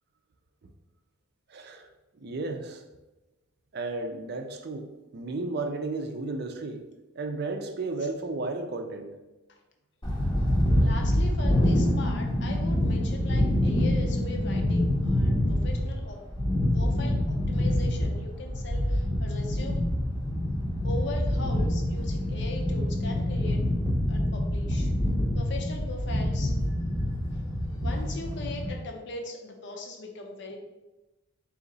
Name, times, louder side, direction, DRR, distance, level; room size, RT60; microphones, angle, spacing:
voice 1, 1.5-1.9 2.1-2.8 3.7-6.9 7.2-9.1, right 3 dB, 50° right, 6 dB, 0.4 m, -33 dB
sound 1, 10.0-28.7, left 1 dB, 20° left, 0.7 m, -26 dB
voice 2, 10.8-16.2 16.7-19.8 20.8-23.6 24.1-24.9 25.3-26.5 27.8-30.6, left 2 dB, 55° left, 2 dB, 0.6 m, -39 dB
3.9 x 2.8 x 3.9 m, 1.0 s
head